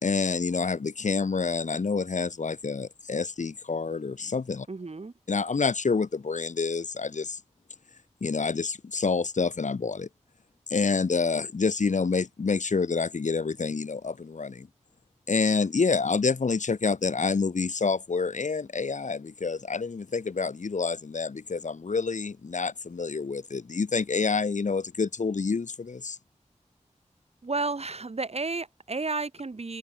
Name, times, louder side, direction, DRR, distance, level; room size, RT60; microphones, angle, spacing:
voice 1, 0.0-4.7 5.3-7.4 8.2-10.1 10.7-14.7 15.3-26.2, left 4 dB, 75° left, 2.4 m, -28 dB
voice 2, 4.7-5.1 27.4-29.8, right 3 dB, 55° right, 3.4 m, -32 dB
open air
wide cardioid pair, 55°, 12 cm